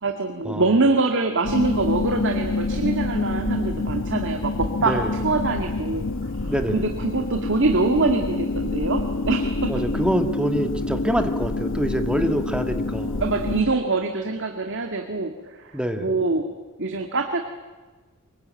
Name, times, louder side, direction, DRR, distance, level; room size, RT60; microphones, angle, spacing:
voice 1, 0.0-6.1 6.4-9.7 13.2-16.5 16.8-17.4, right 3 dB, 60° right, 5 dB, 2.0 m, -24 dB
sound 1, 1.4-13.6, left 2 dB, 60° left, 1.1 m, -27 dB
voice 2, 4.8-5.1 6.5-6.8 9.7-13.2 15.7-16.1, equal, 5° right, 6 dB, 1.8 m, -25 dB
25.0 x 22.5 x 9.0 m, 1.3 s
head